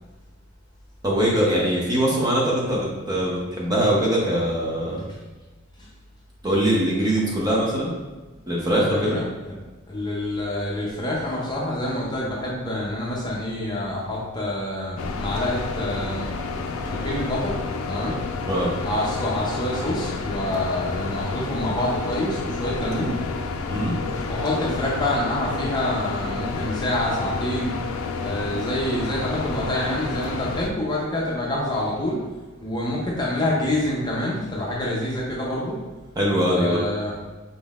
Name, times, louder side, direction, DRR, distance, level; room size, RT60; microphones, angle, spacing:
voice 1, 1.0-5.0 6.4-7.9 8.5-9.2 18.5-18.7 23.7-24.0 36.2-36.8, right 1 dB, 20° right, -4 dB, 0.7 m, -22 dB
voice 2, 8.7-9.2 9.9-16.3 16.8-17.6 17.9-18.2 18.8-23.1 24.2-27.7 28.2-32.2 32.6-35.8 36.5-37.1, left 1 dB, 20° left, -4 dB, 0.6 m, -27 dB
sound 1, 15.0-30.7, left 4 dB, 75° left, 0.4 m, -30 dB
4.0 x 3.7 x 2.4 m, 1.2 s
head